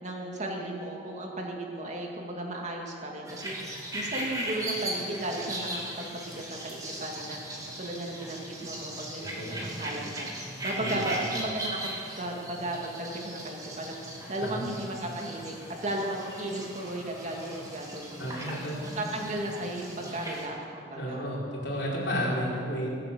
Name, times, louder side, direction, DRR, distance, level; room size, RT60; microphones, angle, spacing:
voice 1, 0.0-3.6 3.9-7.4 7.8-10.3 10.6-13.9 14.3-15.6 15.8-18.4 19.0-21.3, right 1 dB, 40° right, 0 dB, 2.2 m, -35 dB
sound 1, 3.3-20.4, right 1 dB, 20° right, 2.5 m, -38 dB
voice 2, 9.2-9.6 10.8-11.0 14.4-14.7 18.2-18.7 21.0-22.9, equal, 65° left, -5 dB, 4.5 m, -32 dB
21.5 x 8.4 x 6.9 m, 2.6 s
head